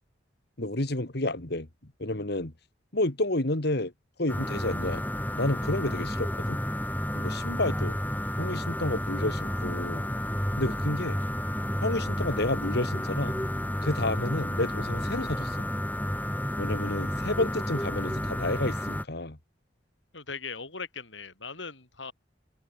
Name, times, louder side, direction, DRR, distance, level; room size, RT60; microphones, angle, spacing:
voice 1, 0.6-1.7 2.0-2.5 2.9-3.9 4.2-5.0 5.3-6.6 7.2-8.0 8.4-10.1 10.6-11.2 11.8-13.3 13.8-15.7 16.6-19.4, left 2 dB, 60° left, 2.4 m, -30 dB
sound 1, 4.3-19.0, equal, 10° left, 6.2 m, -31 dB
voice 2, 20.1-22.1, left 5 dB, 85° left, 6.3 m, -39 dB
head